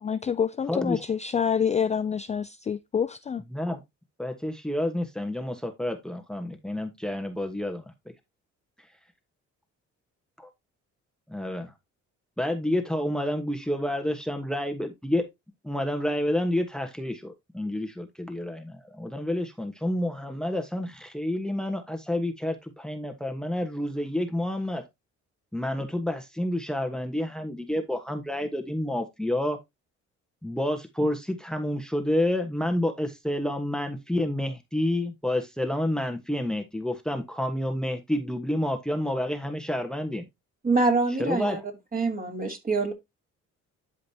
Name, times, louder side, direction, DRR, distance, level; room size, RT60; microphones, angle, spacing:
voice 1, 0.0-3.4, left 7 dB, 25° left, 0.4 m, -27 dB
voice 2, 0.7-1.0 3.5-3.8 4.2-7.9 10.4-10.5 11.3-11.7 12.4-15.3 15.6-24.8 25.5-29.6 30.4-40.3 41.2-41.6, left 1 dB, ahead, 1.3 m, -29 dB
voice 3, 40.6-41.6 41.9-42.9, right 3 dB, 30° right, 2.9 m, -25 dB
11.5 x 5.2 x 2.8 m
cardioid pair, 90°, 30 cm